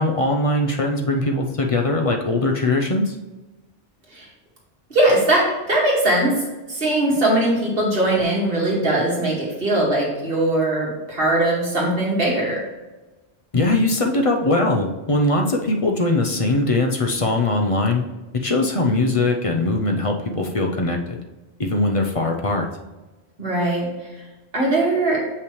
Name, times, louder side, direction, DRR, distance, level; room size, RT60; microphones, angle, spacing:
voice 1, 0.0-3.2 13.5-18.0 18.3-21.2 21.6-22.7, left 2 dB, 35° left, 2 dB, 0.7 m, -21 dB
voice 2, 4.9-6.3 6.7-12.6 23.4-23.9 24.5-25.2, right 1 dB, 60° right, -4 dB, 2.3 m, -20 dB
6.8 x 5.8 x 3.1 m, 1.1 s
omnidirectional pair, 1.1 m